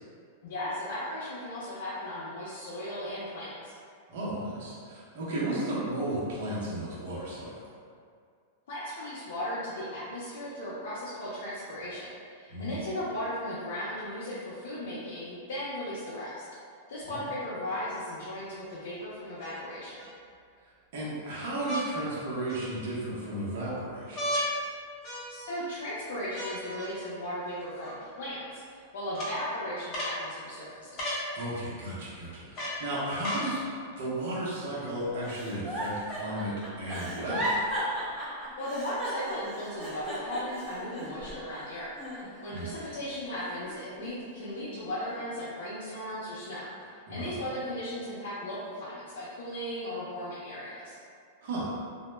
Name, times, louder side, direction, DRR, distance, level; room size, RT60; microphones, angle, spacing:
voice 1, 0.4-3.7 8.7-16.5 16.9-20.1 25.3-31.2 38.6-51.0, left 1 dB, 70° left, -10 dB, 0.5 m, -37 dB
voice 2, 4.1-7.5 12.5-12.7 17.1-17.2 20.9-24.2 31.3-33.6 34.0-37.5 42.5-42.7 47.1-47.4 51.4-51.7, right 1 dB, 55° right, -7 dB, 0.6 m, -34 dB
sound 1, 17.7-17.8 19.4-20.1 21.6-21.8 22.5-23.0 24.1-24.5 25.0-25.6 26.3-26.9 27.8-27.9 29.1-29.3 29.9-30.2 31.0-31.2 32.5-32.8 33.2-33.5 34.3-34.4, equal, 30° left, 0.6 m, -34 dB
Giggle, 35.2-41.6 42.0-42.9 43.4-44.5 45.0-45.4, equal, 5° right, 1.0 m, -36 dB
2.1 x 2.0 x 3.1 m, 2.2 s
supercardioid pair, 170°, 0 cm